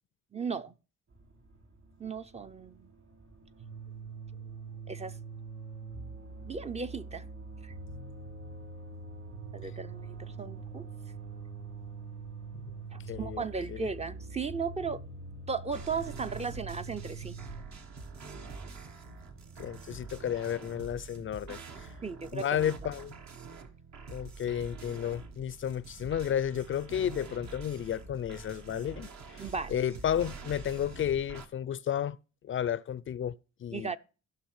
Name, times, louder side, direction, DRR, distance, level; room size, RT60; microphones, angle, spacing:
voice 1, 0.3-0.7 2.0-2.9 4.9-5.2 6.4-7.3 7.6-7.7 9.5-10.9 12.9-15.0 15.5-17.4 22.0-22.7 29.4-29.7 33.7-34.0, right 5 dB, 20° right, 0.4 m, -36 dB
sound 1, 1.1-21.0, right 3 dB, 45° right, 6.4 m, -54 dB
sound 2, 3.6-17.6, right 4 dB, 80° right, 5.0 m, -44 dB
voice 2, 13.1-13.9 19.6-21.9 22.3-23.1 24.1-29.4 29.7-32.2 32.4-33.9, left 9 dB, 45° left, 0.4 m, -32 dB
sound 3, 15.7-31.5, right 4 dB, 65° right, 1.3 m, -46 dB
15.0 x 5.7 x 3.1 m
cardioid pair, 90°, 30 cm